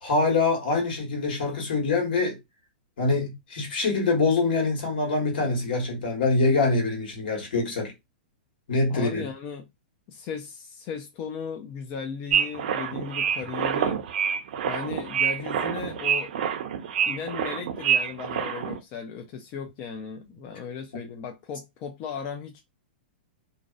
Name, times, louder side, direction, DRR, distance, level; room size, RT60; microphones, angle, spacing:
voice 1, 0.0-2.4 3.0-7.9 8.7-9.3, left 3 dB, 70° left, 1.3 m, -24 dB
voice 2, 8.9-9.6 10.1-14.0 14.7-16.3 17.1-22.6, left 6 dB, 40° left, 0.4 m, -36 dB
sound 1, 12.3-18.8, right 8 dB, 65° right, 0.5 m, -27 dB
2.6 x 2.1 x 2.4 m
hypercardioid pair, 130°, 5 cm